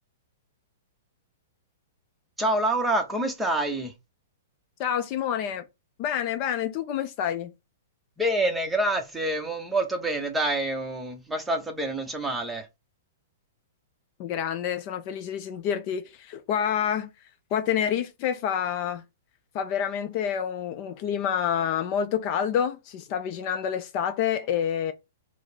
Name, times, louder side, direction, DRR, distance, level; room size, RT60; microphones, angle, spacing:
voice 1, 2.4-3.9 8.2-12.7, right 1 dB, 5° right, 0.9 m, -27 dB
voice 2, 4.8-5.6 6.0-7.5 14.2-17.1 17.5-19.0 19.5-24.9, left 9 dB, 40° left, 0.5 m, -28 dB
4.7 x 2.1 x 4.3 m
hypercardioid pair, 130°, 0 cm